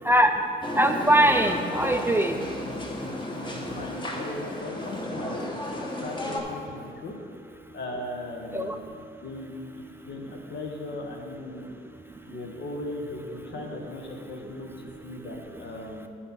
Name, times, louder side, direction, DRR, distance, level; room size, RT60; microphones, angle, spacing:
sound 1, 0.6-6.4, left 1 dB, 25° left, 1.2 m, -33 dB
voice 1, 0.7-2.3 8.5-8.8, right 1 dB, 10° right, 5 dB, 0.4 m, -21 dB
sound 2, 1.1-3.9, left 1 dB, 5° left, 1.5 m, -41 dB
voice 2, 3.3-7.1 7.7-8.8 9.2-9.6 10.0-11.7 12.3-16.1, left 2 dB, 60° left, 2 dB, 1.4 m, -38 dB
11.5 x 4.3 x 6.0 m, 2.3 s
cardioid pair, 90°, 20 cm